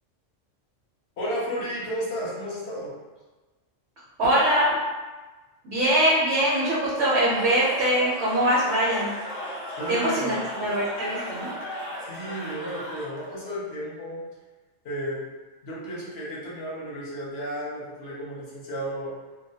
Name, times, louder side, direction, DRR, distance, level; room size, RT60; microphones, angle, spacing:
voice 1, 1.2-2.9 9.8-10.4 12.0-14.2 14.8-15.2 15.6-19.1, equal, 65° left, -6 dB, 0.8 m, -33 dB
voice 2, 4.2-4.8 5.6-9.1 9.9-11.5, right 1 dB, 65° right, -7 dB, 0.8 m, -23 dB
Cheering / Crowd, 7.1-13.4, left 1 dB, 35° left, 0.6 m, -36 dB
2.2 x 2.1 x 2.6 m, 1.2 s
omnidirectional pair, 1.3 m